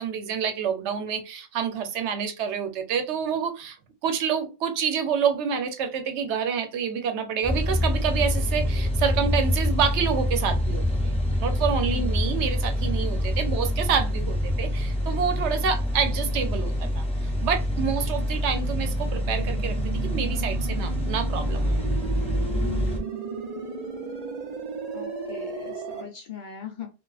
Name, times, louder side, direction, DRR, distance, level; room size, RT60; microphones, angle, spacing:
voice 1, 0.0-3.8 4.0-17.1 17.4-21.7, right 7 dB, 85° right, 0.9 m, -28 dB
sound 1, 7.4-23.0, left 1 dB, 10° left, 0.4 m, -26 dB
voice 2, 11.8-12.1 22.5-23.0 24.9-26.9, left 8 dB, 50° left, 0.7 m, -39 dB
sound 2, 18.6-26.0, right 5 dB, 50° right, 0.5 m, -35 dB
2.4 x 2.3 x 2.3 m
omnidirectional pair, 1.1 m